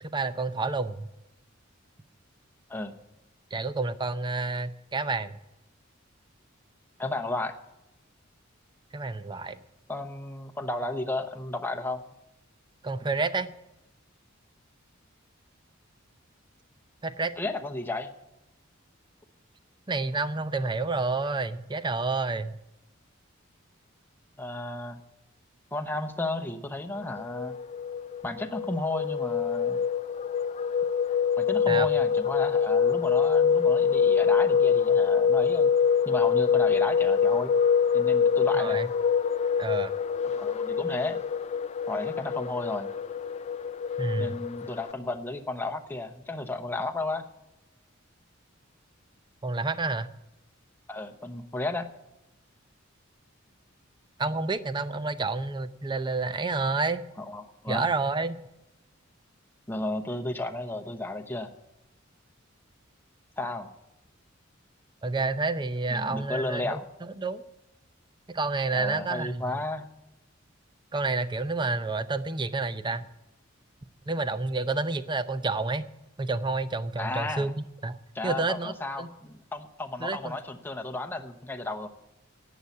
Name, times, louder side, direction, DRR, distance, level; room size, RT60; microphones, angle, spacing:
voice 1, 0.0-1.1 3.5-5.3 8.9-9.6 12.8-13.5 17.0-17.3 19.9-22.5 31.7-31.9 38.5-38.9 39.6-39.9 44.0-44.4 49.4-50.1 54.2-57.0 57.7-58.4 65.0-67.4 68.3-69.6 70.9-73.1 74.1-75.9 76.2-78.0 78.2-79.1 80.0-80.4, right 3 dB, 25° right, 12 dB, 0.6 m, -29 dB
voice 2, 7.0-7.5 9.9-12.0 17.4-18.1 24.4-25.0 25.7-27.5 28.2-29.8 31.4-35.7 36.0-37.5 37.9-38.8 40.2-41.2 41.9-42.9 44.2-47.2 50.9-51.9 57.2-57.9 59.7-61.5 63.4-63.7 65.9-66.8 68.7-69.9 77.0-77.5 78.1-81.9, left 2 dB, 10° left, 3 dB, 0.9 m, -33 dB
sound 1, 27.2-44.9, left 6 dB, 35° left, 0.4 m, -25 dB
11.0 x 8.6 x 9.2 m, 0.92 s
head